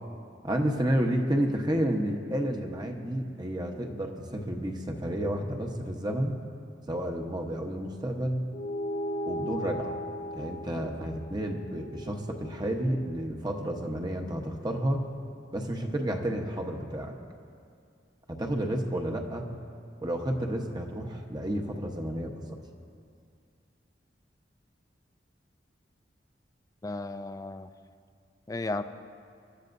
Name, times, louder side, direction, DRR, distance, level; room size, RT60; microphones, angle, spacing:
voice 1, 0.4-6.4 6.9-8.4 9.3-9.9 10.3-15.0 15.5-17.2 18.3-19.5 20.0-22.6, right 1 dB, 25° right, 2 dB, 1.1 m, -31 dB
sound 1, 8.5-13.3, equal, 50° left, 0.7 m, -37 dB
voice 2, 26.8-27.7 28.5-28.8, left 2 dB, 20° left, 10 dB, 0.4 m, -34 dB
27.0 x 13.0 x 2.7 m, 2.3 s
head